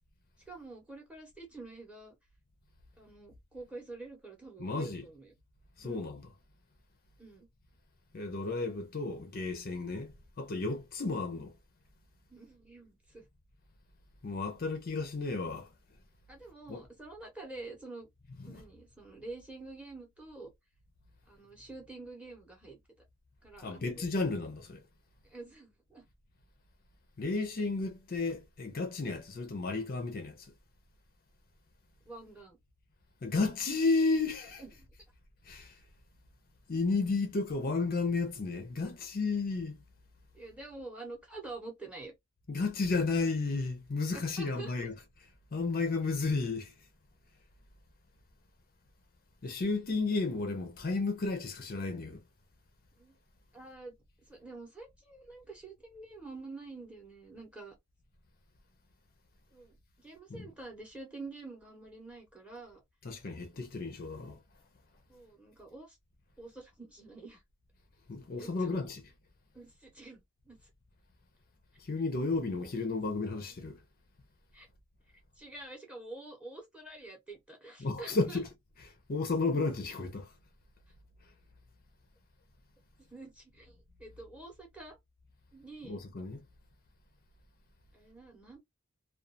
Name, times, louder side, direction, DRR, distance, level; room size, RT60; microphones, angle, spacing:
voice 1, 0.5-2.1 3.0-5.3 5.8-6.1 7.2-7.5 12.3-13.2 16.3-18.1 18.5-20.5 21.3-22.8 23.4-24.1 25.2-26.0 32.1-32.6 34.6-34.9 40.3-42.1 44.1-44.7 53.0-53.1 53.5-54.0 54.3-57.7 59.5-62.8 65.1-66.0 66.4-67.4 68.4-68.9 69.5-70.6 72.6-72.7 74.5-74.7 75.4-78.4 83.1-85.0 85.5-86.0 87.9-88.6, right 3 dB, 5° right, 0.8 m, -47 dB
voice 2, 4.6-5.0 5.8-6.2 8.1-10.1 10.4-11.5 14.2-15.7 16.7-16.8 18.4-18.6 23.6-24.8 27.2-30.5 33.2-34.6 35.5-35.7 36.7-39.8 42.5-45.0 45.5-46.7 49.4-52.2 60.3-60.5 63.0-64.4 68.1-69.0 71.8-73.8 77.8-78.5 79.1-80.3 85.8-86.4, left 3 dB, 40° left, 0.5 m, -32 dB
2.4 x 2.3 x 2.5 m
head